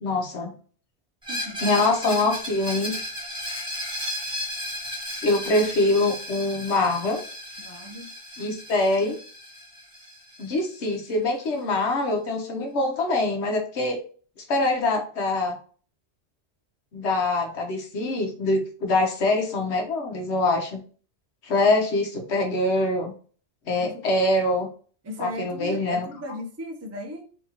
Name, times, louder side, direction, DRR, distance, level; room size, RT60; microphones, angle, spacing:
voice 1, 0.0-0.5 1.6-3.0 5.2-7.2 8.4-9.2 10.4-14.0 14.5-15.6 16.9-20.8 21.4-23.1 23.7-24.7 25.2-26.1, left 2 dB, 70° left, 1.2 m, -24 dB
Screech, 1.2-10.9, equal, 5° right, 1.0 m, -35 dB
voice 2, 1.3-1.6 7.6-8.1 23.8-24.0 25.0-27.2, left 1 dB, 25° right, 0.3 m, -36 dB
4.2 x 2.8 x 2.8 m
omnidirectional pair, 1.2 m